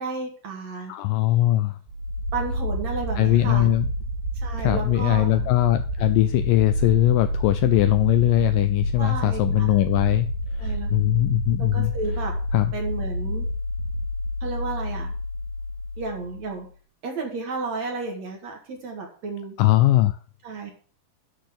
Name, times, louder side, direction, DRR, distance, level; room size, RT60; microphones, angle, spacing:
voice 1, 0.0-0.9 2.3-3.7 4.4-5.5 9.0-9.8 10.6-10.9 11.6-12.3 12.7-13.5 14.4-15.1 16.0-16.7 17.0-19.6 20.4-20.7, right 4 dB, 50° right, 2 dB, 2.8 m, -32 dB
voice 2, 0.9-1.8 3.2-3.9 4.6-10.3 10.6-11.9 12.5-12.7 19.6-20.2, left 15 dB, 80° left, 10 dB, 2.0 m, -20 dB
sound 1, 1.9-16.7, equal, 75° right, 3.7 m, -29 dB
8.6 x 6.2 x 7.9 m, 0.44 s
omnidirectional pair, 4.4 m